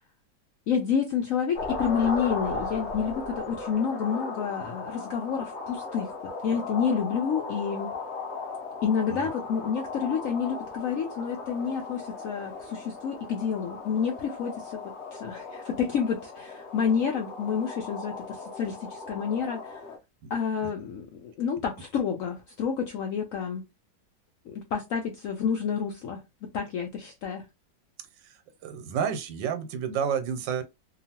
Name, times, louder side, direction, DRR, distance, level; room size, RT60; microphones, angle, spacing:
voice 1, 0.7-6.1 6.4-7.9 8.8-14.8 15.1-19.8 20.3-23.6 24.5-27.4, left 7 dB, 80° left, 0.7 m, -29 dB
sound 1, 1.5-20.0, left 3 dB, 55° left, 0.8 m, -37 dB
voice 2, 28.2-30.6, right 7 dB, 90° right, 1.4 m, -30 dB
2.9 x 2.3 x 2.8 m
omnidirectional pair, 1.9 m